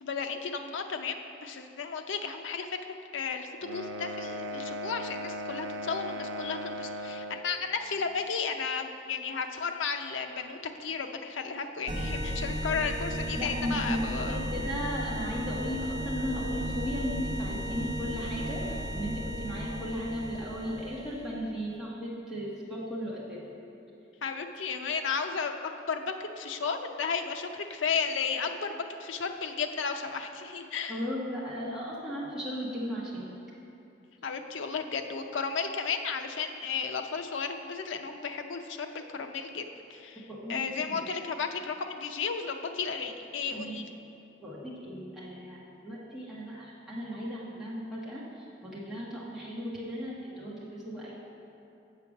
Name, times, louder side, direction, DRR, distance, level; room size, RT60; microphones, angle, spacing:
voice 1, 0.0-1.2 1.4-2.8 3.1-14.5 24.2-31.0 34.2-39.6 39.9-40.2 40.5-43.9, left 5 dB, 85° left, 6 dB, 0.6 m, -33 dB
sound 1, 3.6-7.5, equal, 85° right, 0.5 m, -37 dB
sound 2, 11.9-21.3, equal, 35° right, 1.1 m, -35 dB
voice 2, 13.4-23.4 30.9-33.3 40.3-41.1 43.5-43.8 44.4-51.1, equal, ahead, -8 dB, 1.2 m, -36 dB
7.6 x 5.0 x 7.1 m, 2.7 s
head